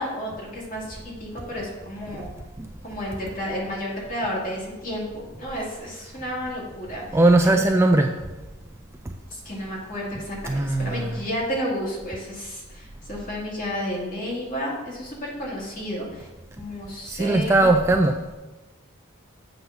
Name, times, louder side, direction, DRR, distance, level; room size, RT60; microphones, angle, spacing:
voice 1, 0.0-2.3 2.8-5.1 5.4-7.2 7.4-7.6 9.3-16.3 16.6-17.8, equal, 40° left, -5 dB, 2.3 m, -31 dB
voice 2, 7.1-8.1 10.5-11.2 17.1-18.2, right 2 dB, 10° right, 4 dB, 0.3 m, -19 dB
8.3 x 3.9 x 5.8 m, 1.1 s
head